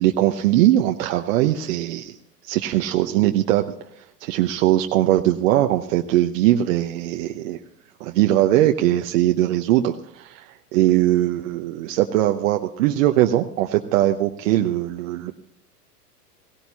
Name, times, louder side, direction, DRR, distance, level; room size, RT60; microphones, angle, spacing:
voice 1, 0.0-2.1 2.4-7.6 8.0-15.3, right 13 dB, 55° right, 5 dB, 0.9 m, -20 dB
17.5 x 17.0 x 2.8 m, 0.72 s
hypercardioid pair, 100°, 48 cm